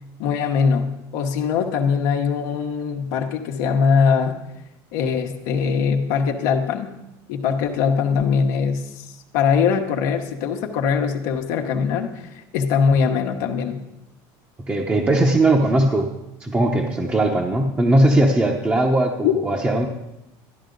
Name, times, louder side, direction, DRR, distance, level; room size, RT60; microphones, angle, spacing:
voice 1, 0.2-4.4 4.9-6.9 7.3-9.0 9.3-13.8 19.2-19.3, left 6 dB, 80° left, 2 dB, 1.1 m, -21 dB
voice 2, 14.7-16.1 16.4-19.9, right 1 dB, 15° right, 1 dB, 0.8 m, -19 dB
12.5 x 10.0 x 3.9 m, 0.90 s
supercardioid pair, 125°, 9 cm